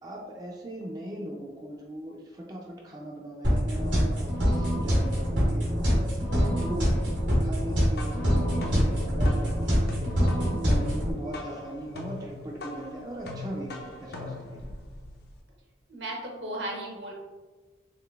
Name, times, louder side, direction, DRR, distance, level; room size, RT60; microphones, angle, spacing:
voice 1, 0.0-10.4 10.6-14.7, right 1 dB, 20° right, -2 dB, 0.3 m, -40 dB
sound 1, 3.4-11.1, equal, 90° right, 1.5 m, -25 dB
sound 2, 7.7-15.4, left 2 dB, 55° left, 0.5 m, -40 dB
voice 2, 15.9-17.1, right 1 dB, 70° right, -1 dB, 0.9 m, -35 dB
3.7 x 3.2 x 2.3 m, 1.3 s
head